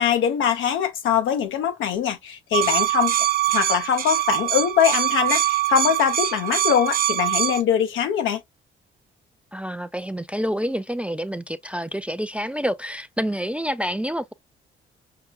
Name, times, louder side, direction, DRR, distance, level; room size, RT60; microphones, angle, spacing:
voice 1, 0.0-3.1 3.5-8.4, left 8 dB, 80° left, 0.8 m, -22 dB
sound 1, 2.5-7.6, right 12 dB, 50° right, 0.8 m, -23 dB
voice 2, 9.5-14.3, equal, 5° right, 0.3 m, -28 dB
5.8 x 2.3 x 2.3 m
cardioid pair, 90°, 20 cm